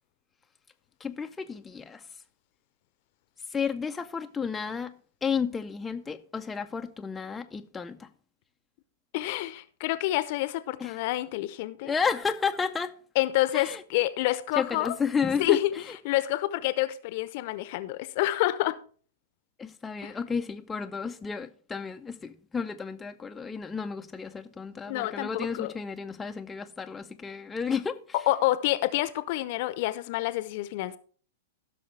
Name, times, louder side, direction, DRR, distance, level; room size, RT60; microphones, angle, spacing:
voice 1, 1.0-2.0 3.5-4.9 5.2-8.1 10.8-11.0 11.8-12.9 13.5-13.8 14.6-15.6 15.9-16.0 19.6-28.0, left 6 dB, 15° left, 0.5 m, -32 dB
voice 2, 9.1-11.9 13.2-15.0 15.4-18.8 20.0-20.1 24.9-25.7 28.3-31.0, left 16 dB, 50° left, 0.7 m, -28 dB
15.5 x 6.2 x 3.3 m
figure-of-eight pair, 100°, 0 cm